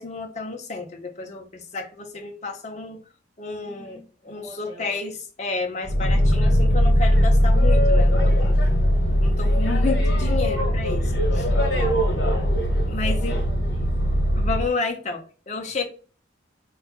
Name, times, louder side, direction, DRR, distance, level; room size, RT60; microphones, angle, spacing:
voice 1, 0.0-3.0 3.4-8.6 9.2-11.5 12.9-13.4 14.4-15.9, left 3 dB, 40° left, 1 dB, 0.7 m, -31 dB
voice 2, 3.6-5.0 8.3-8.9 11.1-13.9, left 2 dB, 20° right, -3 dB, 0.7 m, -44 dB
Boat Water vehicle, 5.8-14.7, equal, 70° left, 1.2 m, -20 dB
4.5 x 2.4 x 2.3 m, 0.37 s
head